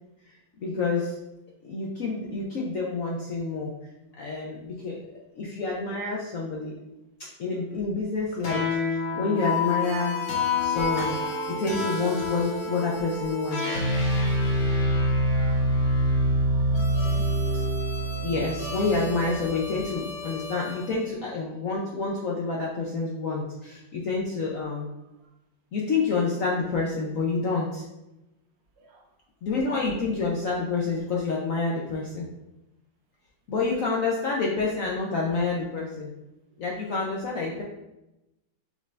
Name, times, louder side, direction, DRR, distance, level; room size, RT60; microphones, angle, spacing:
voice 1, 0.6-1.2 1.6-3.7 4.2-5.0 5.4-6.7 7.4-8.6 8.9-10.2 10.6-11.2 11.5-13.8 18.2-24.9 25.7-27.8 29.4-32.3 33.5-36.1 36.6-37.6, left 3 dB, 65° left, -3 dB, 0.8 m, -28 dB
sound 1, 8.4-20.9, equal, 50° left, 1.4 m, -26 dB
voice 2, 14.5-15.7 16.4-17.3 25.2-25.3 28.8-29.1, right 1 dB, 70° right, -1 dB, 1.6 m, -49 dB
6.4 x 2.6 x 3.2 m, 0.94 s
omnidirectional pair, 2.1 m